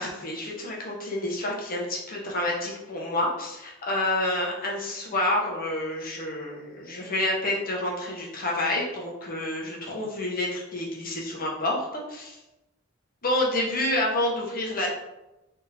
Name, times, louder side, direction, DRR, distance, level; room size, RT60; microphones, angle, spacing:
voice 1, 0.0-12.4 13.2-14.9, left 1 dB, 45° left, -3 dB, 1.0 m, -28 dB
3.6 x 3.5 x 2.9 m, 0.96 s
head